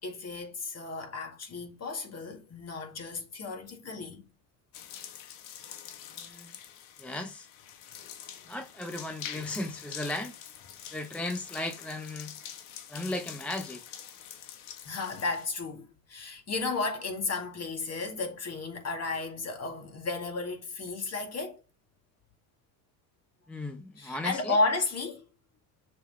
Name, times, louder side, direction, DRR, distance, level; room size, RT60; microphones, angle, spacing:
voice 1, 0.0-4.3 9.4-9.5 14.9-21.6 24.0-25.3, left 3 dB, 35° left, 2.1 m, -33 dB
sound 1, 4.7-15.5, left 9 dB, 85° left, 1.3 m, -45 dB
voice 2, 6.2-6.5 7.0-7.5 8.5-10.3 10.9-12.3 12.9-13.8 23.5-24.6, left 1 dB, 5° left, 0.5 m, -36 dB
6.6 x 3.8 x 4.6 m
cardioid pair, 115°, 43 cm